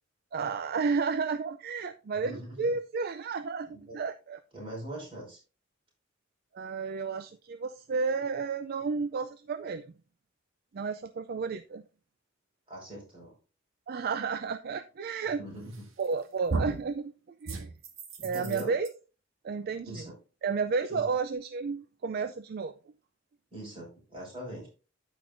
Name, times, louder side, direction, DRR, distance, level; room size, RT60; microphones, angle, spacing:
voice 1, 0.3-4.4 6.5-9.9 10.7-11.8 13.9-15.4 16.0-17.7 18.2-18.9 19.4-20.1 20.4-22.7, right 5 dB, 50° right, 11 dB, 0.4 m, -32 dB
voice 2, 2.2-2.6 3.7-3.9 4.5-5.4 12.7-13.3 15.4-15.9 18.2-18.7 19.8-20.1 20.9-21.0 23.5-24.7, right 1 dB, 25° right, -3 dB, 5.0 m, -41 dB
sound 1, 15.7-16.1 16.5-16.9 17.4-18.9, right 3 dB, 90° right, 1.6 m, -34 dB
14.0 x 5.1 x 2.6 m, 0.33 s
head